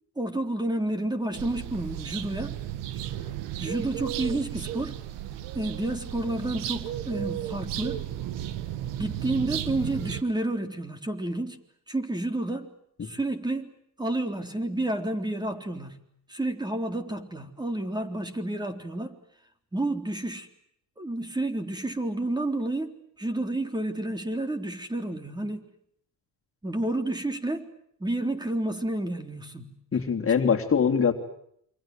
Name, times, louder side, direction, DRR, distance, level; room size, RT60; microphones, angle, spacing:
voice 1, 0.2-2.6 3.6-5.0 5.5-8.1 9.0-11.6 11.9-12.7 13.0-13.7 14.0-16.0 16.3-19.2 19.7-20.5 21.0-25.6 26.6-27.7 28.0-29.7, right 1 dB, 10° right, 8 dB, 3.8 m, -30 dB
sound 1, 1.3-10.2, right 11 dB, 85° right, 1.9 m, -34 dB
voice 2, 29.9-31.1, left 6 dB, 30° left, 3 dB, 3.5 m, -23 dB
29.0 x 25.5 x 7.8 m, 0.71 s
cardioid pair, 120°, 41 cm